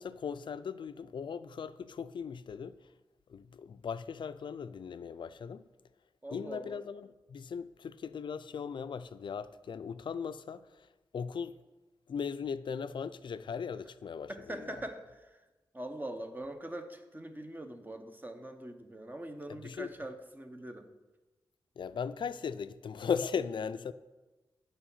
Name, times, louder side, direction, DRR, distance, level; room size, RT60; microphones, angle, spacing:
voice 1, 0.0-2.9 3.3-5.6 6.3-10.9 11.1-11.5 12.1-14.8 19.5-19.9 21.8-23.9, left 6 dB, 70° left, 0.4 m, -38 dB
voice 2, 6.2-6.8 14.3-15.4 15.7-20.9, right 1 dB, 20° right, 0.9 m, -43 dB
8.7 x 5.5 x 5.6 m
cardioid pair, 65°, 9 cm